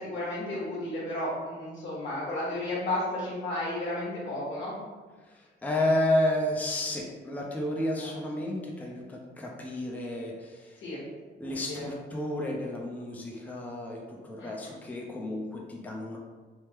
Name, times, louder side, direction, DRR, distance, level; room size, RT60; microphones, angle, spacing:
voice 1, 0.0-4.7 8.0-8.1 10.8-11.0 11.5-11.8 14.4-14.7, left 1 dB, 90° left, -7 dB, 1.3 m, -33 dB
voice 2, 5.2-10.8 11.4-16.2, left 1 dB, 10° left, -1 dB, 0.4 m, -31 dB
3.0 x 2.0 x 3.3 m, 1.4 s
cardioid pair, 125°, 19 cm